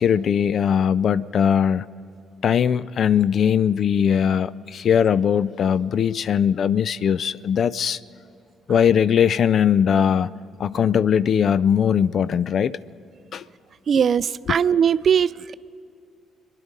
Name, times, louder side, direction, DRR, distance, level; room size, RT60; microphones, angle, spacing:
voice 1, 0.0-1.9 2.4-8.0 8.7-10.3 10.6-12.8 13.3-13.4 14.5-14.6, left 8 dB, 55° left, 17 dB, 0.3 m, -20 dB
voice 2, 13.9-15.5, right 7 dB, 55° right, 18 dB, 0.3 m, -20 dB
25.5 x 11.0 x 5.2 m, 2.5 s
hypercardioid pair, 45°, 0 cm